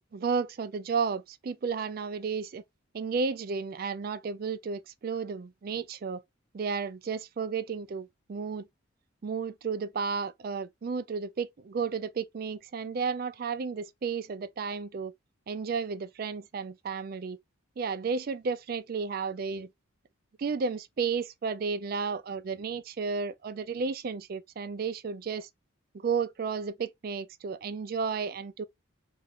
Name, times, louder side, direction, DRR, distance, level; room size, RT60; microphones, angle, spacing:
voice 1, 0.1-2.6 2.9-6.2 6.5-8.6 9.2-15.1 15.5-17.4 17.8-19.7 20.4-25.5 25.9-28.6, right 5 dB, 45° right, 0.3 m, -33 dB
2.5 x 2.3 x 3.5 m
head